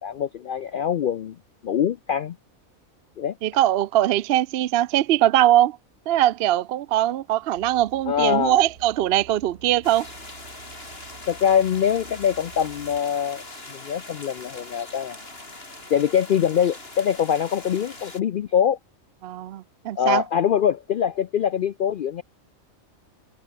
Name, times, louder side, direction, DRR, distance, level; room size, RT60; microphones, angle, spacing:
voice 1, 0.0-1.4 1.6-2.4 3.2-3.4 8.1-8.6 11.3-13.4 13.7-15.2 15.9-18.8 20.0-22.2, left 8 dB, 65° left, 0.5 m, -23 dB
voice 2, 3.4-5.8 6.1-10.1 19.2-20.2, right 13 dB, 60° right, 0.6 m, -21 dB
sound 1, 7.5-13.0, right 5 dB, 85° right, 2.3 m, -48 dB
sound 2, 9.8-18.2, left 2 dB, 45° left, 4.8 m, -41 dB
omnidirectional pair, 1.4 m